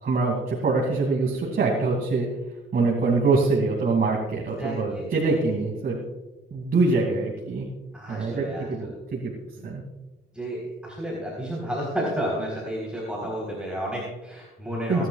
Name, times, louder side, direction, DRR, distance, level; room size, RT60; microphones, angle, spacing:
voice 1, 0.0-2.3 2.7-6.0 6.5-7.7 8.1-9.3 9.6-9.8 14.9-15.1, right 3 dB, 50° right, -2 dB, 2.6 m, -24 dB
voice 2, 4.6-5.6 7.9-8.9 9.6-9.7 10.3-15.1, equal, 5° right, -4 dB, 3.9 m, -32 dB
23.0 x 11.0 x 2.4 m, 1.1 s
cardioid pair, 90°, 20 cm